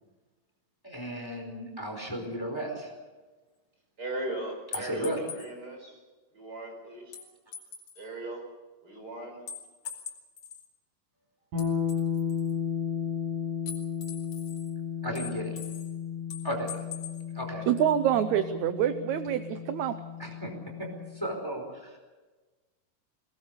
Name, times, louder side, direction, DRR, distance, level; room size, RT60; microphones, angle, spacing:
voice 1, 0.8-2.9 4.7-5.2 15.0-15.5 16.4-16.8 17.3-17.7 20.2-20.5 20.8-22.0, equal, 5° left, 3 dB, 4.4 m, -35 dB
voice 2, 4.0-6.0 6.3-7.2 8.0-8.4 8.8-9.4, right 2 dB, 30° right, 2 dB, 5.2 m, -38 dB
sound 1, 4.7-5.5 7.1-8.1 9.5-10.7 11.6-12.5 13.7-14.7 15.2-15.9 16.3-17.2, left 6 dB, 60° left, 3.6 m, -42 dB
sound 2, 11.5-21.3, left 7 dB, 85° right, 7.6 m, -34 dB
voice 3, 17.7-20.0, right 10 dB, 70° right, 10 dB, 2.0 m, -26 dB
22.0 x 19.5 x 6.8 m, 1.3 s
omnidirectional pair, 3.8 m